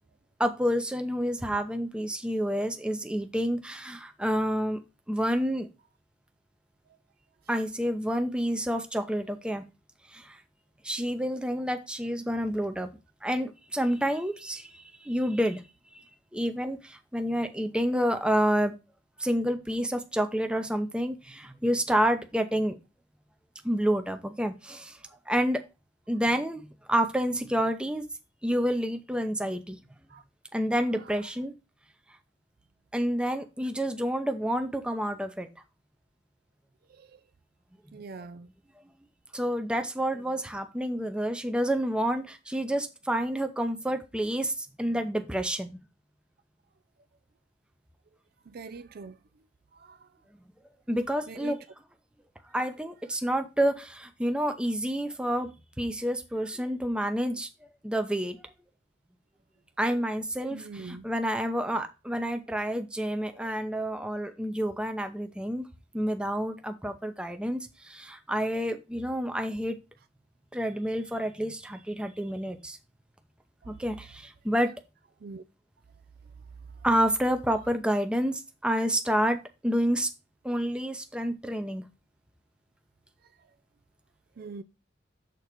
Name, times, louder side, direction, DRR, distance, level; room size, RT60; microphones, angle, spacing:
voice 1, 0.4-4.8 5.1-5.7 7.5-9.6 10.1-10.4 10.8-12.9 13.2-15.6 16.3-18.8 19.2-22.8 23.6-25.0 25.3-25.6 26.1-28.0 28.4-29.8 30.5-31.5 32.9-35.5 39.3-45.8 50.9-51.6 52.5-55.5 55.8-57.5 57.8-58.4 59.8-65.7 65.9-69.8 70.5-72.8 73.7-74.7 76.8-80.1 80.4-81.8, equal, 5° right, 0.7 m, -29 dB
voice 2, 31.0-31.3 36.9-37.2 37.9-38.5 48.5-49.2 49.7-50.1 51.3-51.6 60.5-61.1 63.3-63.5 73.6-73.8 75.2-75.4 84.4-84.6, right 4 dB, 50° right, 0.4 m, -43 dB
6.7 x 4.0 x 6.0 m
head